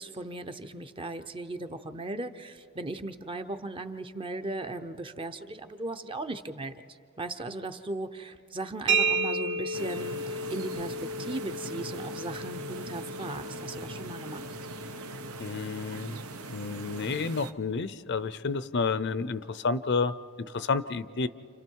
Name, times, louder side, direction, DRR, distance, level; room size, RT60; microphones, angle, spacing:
voice 1, 0.0-6.7 7.2-14.4, right 2 dB, 25° right, 8 dB, 0.7 m, -37 dB
sound 1, 8.9-16.4, right 3 dB, 55° right, 1.3 m, -33 dB
sound 2, 9.7-17.5, right 3 dB, 85° right, 1.0 m, -41 dB
voice 2, 15.4-16.2 16.5-20.1 20.5-21.3, left 4 dB, 50° left, 14 dB, 0.6 m, -30 dB
29.5 x 28.5 x 4.7 m, 2.4 s
head